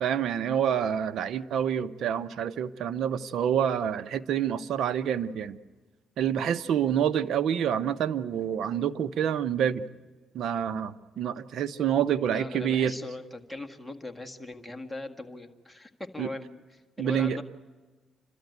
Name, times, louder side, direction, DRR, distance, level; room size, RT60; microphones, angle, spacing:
voice 1, 0.0-5.6 6.2-9.8 10.3-12.9 16.2-16.3 17.0-17.4, right 9 dB, 70° right, 13 dB, 0.8 m, -27 dB
voice 2, 12.3-17.4, left 2 dB, 5° left, 3 dB, 1.9 m, -40 dB
29.0 x 13.0 x 9.4 m, 1.3 s
cardioid pair, 90°, 0 cm